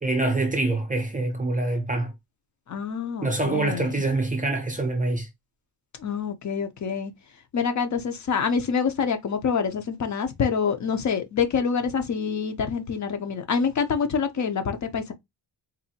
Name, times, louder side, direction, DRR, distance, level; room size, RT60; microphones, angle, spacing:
voice 1, 0.0-2.1 3.2-5.3, right 2 dB, 20° right, 0.5 m, -25 dB
voice 2, 2.7-3.9 6.0-7.1 7.5-15.1, left 6 dB, 40° left, 0.7 m, -26 dB
4.0 x 2.7 x 2.8 m
cardioid pair, 160°, 44 cm